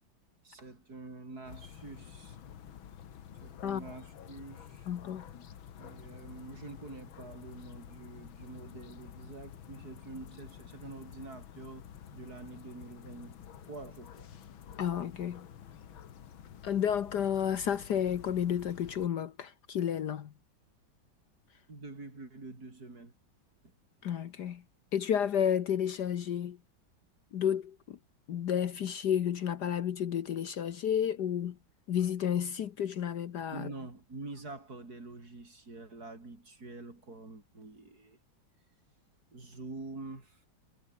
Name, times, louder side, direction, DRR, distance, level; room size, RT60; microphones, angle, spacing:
voice 1, 0.4-2.4 3.4-4.9 5.8-11.9 12.1-14.3 21.7-23.1 23.6-23.8 33.5-38.2 39.3-40.4, right 2 dB, 50° right, 5.6 m, -46 dB
sound 1, 1.5-19.1, left 9 dB, 80° left, 2.3 m, -50 dB
voice 2, 4.9-5.4 14.8-15.5 16.6-20.3 24.0-24.6 24.9-26.6 27.3-28.0 28.3-31.6 31.9-33.7, left 9 dB, 60° left, 1.5 m, -31 dB
omnidirectional pair, 2.2 m